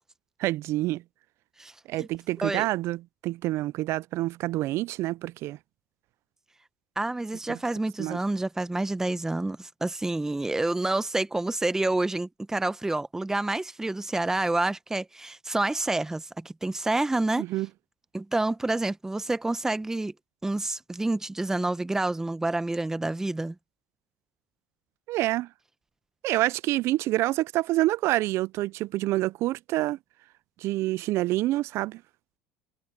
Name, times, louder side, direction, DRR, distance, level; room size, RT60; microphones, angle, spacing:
voice 1, 0.4-1.0 1.9-5.6 7.5-7.6 8.0-8.2 17.4-17.7 25.1-25.5 26.2-30.0 30.6-32.0, right 17 dB, 60° right, 0.4 m, -27 dB
voice 2, 7.0-17.4 18.1-20.1 20.4-23.5, right 2 dB, 10° right, 0.9 m, -28 dB
supercardioid pair, 95°, 5 cm